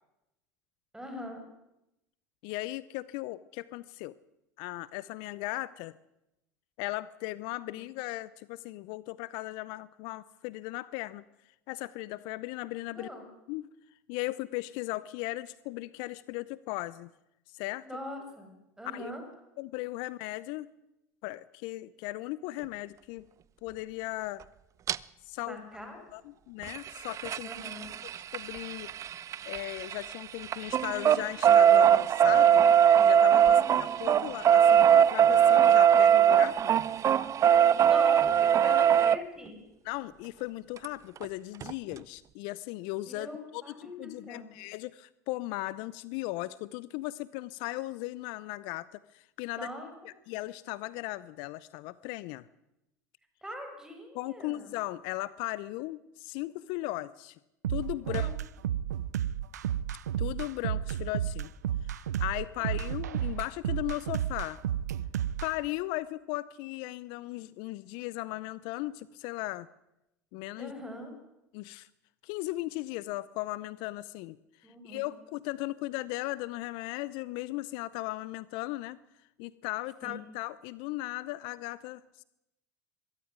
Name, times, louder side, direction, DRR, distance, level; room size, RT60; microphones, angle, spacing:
voice 1, 0.9-1.4 7.7-7.8 12.9-13.2 17.8-18.5 18.8-19.2 25.4-26.0 27.4-27.9 33.5-34.3 37.5-39.6 43.1-44.5 49.5-49.9 53.4-54.7 57.9-58.3 62.6-62.8 70.6-71.2 74.6-75.1 80.0-80.1, equal, 5° right, 5 dB, 6.8 m, -42 dB
voice 2, 2.4-4.2 4.6-5.9 6.8-11.2 11.7-13.1 13.5-13.7 14.1-17.1 17.5-17.9 18.8-19.1 19.6-20.7 21.2-23.2 23.6-24.4 25.3-25.6 26.1-27.5 28.3-28.9 29.5-32.7 33.1-36.7 38.6-38.8 39.8-49.7 50.0-52.5 54.1-57.4 57.7-58.3 60.2-61.5 61.9-64.6 65.4-69.7 70.3-70.7 71.5-71.9 72.2-74.4 74.6-79.0 79.4-82.2, left 18 dB, 60° left, 19 dB, 0.7 m, -37 dB
sound 1, 24.9-25.0 26.6-30.1 30.4-39.2 40.8-40.9 41.2-41.3 41.6-41.7, right 9 dB, 35° right, 0.6 m, -21 dB
sound 2, 57.6-65.5, right 10 dB, 85° right, 0.6 m, -32 dB
22.0 x 13.0 x 9.5 m, 0.90 s
hypercardioid pair, 85°, 9 cm